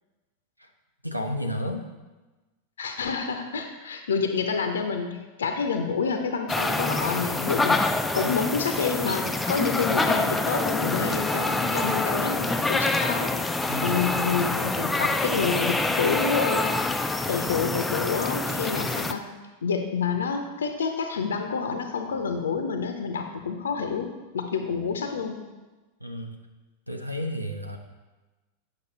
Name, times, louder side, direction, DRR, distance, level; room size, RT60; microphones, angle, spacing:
voice 1, 1.0-1.9 13.7-14.0 26.0-26.4 26.9-27.8, equal, 90° right, 4 dB, 0.6 m, -32 dB
voice 2, 2.8-13.3 13.8-16.7 17.3-19.2 19.6-25.3, left 5 dB, 65° left, 5 dB, 0.6 m, -28 dB
sound 1, 6.5-19.1, left 2 dB, 10° left, 0.4 m, -26 dB
7.9 x 5.3 x 4.1 m, 1.2 s
figure-of-eight pair, 90°, 0 cm